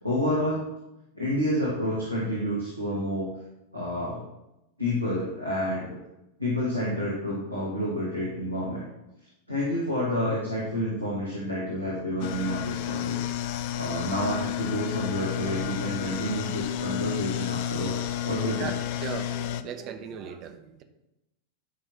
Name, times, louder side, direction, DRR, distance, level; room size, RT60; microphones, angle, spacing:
voice 1, 0.0-0.6 1.1-3.3 3.7-4.2 4.8-6.0 6.4-8.8 9.5-18.7, equal, 85° right, -6 dB, 1.8 m, -29 dB
sound 1, 12.2-19.6, left 11 dB, 50° left, 0.4 m, -31 dB
voice 2, 18.5-20.8, right 8 dB, 35° right, 7 dB, 0.9 m, -38 dB
11.0 x 5.3 x 3.0 m, 0.91 s
figure-of-eight pair, 90°, 0 cm